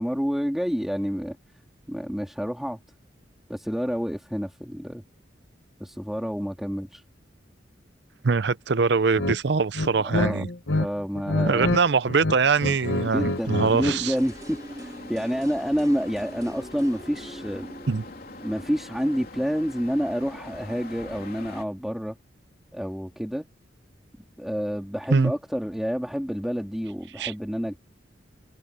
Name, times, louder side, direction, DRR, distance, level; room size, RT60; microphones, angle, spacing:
voice 1, 0.0-1.4 1.9-2.8 3.5-5.0 5.8-7.0 10.0-10.5 10.8-11.7 13.1-17.7 18.4-22.2 22.7-23.4 24.4-27.8, equal, ahead, 2.4 m, -28 dB
voice 2, 8.2-10.5 11.5-14.1 17.9-18.0 25.1-25.3 27.2-27.3, right 4 dB, 60° right, 0.6 m, -23 dB
sound 1, 9.1-9.4 9.7-10.9 11.1-11.8 12.1-14.0, left 2 dB, 75° left, 1.3 m, -26 dB
sound 2, 12.4-21.6, left 2 dB, 50° left, 3.5 m, -43 dB
sound 3, 13.7-19.6 19.9-20.0, right 1 dB, 20° right, 2.6 m, -44 dB
head